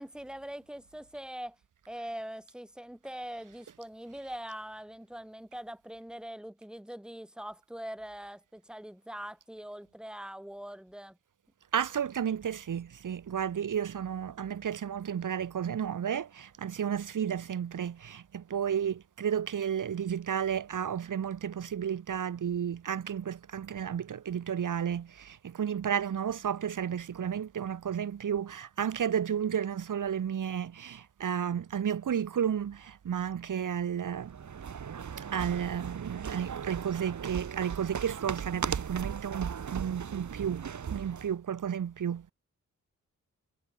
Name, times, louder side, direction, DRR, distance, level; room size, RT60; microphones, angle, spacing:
voice 1, 0.0-1.6 1.9-11.2, equal, 5° right, 3.9 m, -42 dB
voice 2, 11.7-34.4 35.3-40.7 40.9-42.3, right 8 dB, 80° right, 1.9 m, -32 dB
sound 1, 34.2-41.3, right 7 dB, 65° right, 2.8 m, -37 dB
wide cardioid pair, 170°, 31 cm